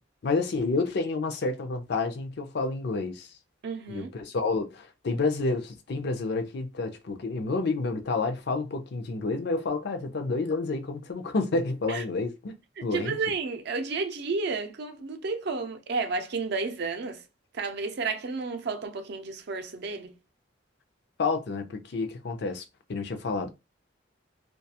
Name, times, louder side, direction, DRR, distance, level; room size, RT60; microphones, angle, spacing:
voice 1, 0.2-3.3 3.9-13.2 21.2-22.6 22.9-23.5, left 3 dB, 60° left, 0.5 m, -29 dB
voice 2, 3.6-4.1 11.9-12.0 12.8-17.2 17.5-20.1, right 4 dB, 60° right, 0.5 m, -32 dB
2.3 x 2.2 x 2.7 m
head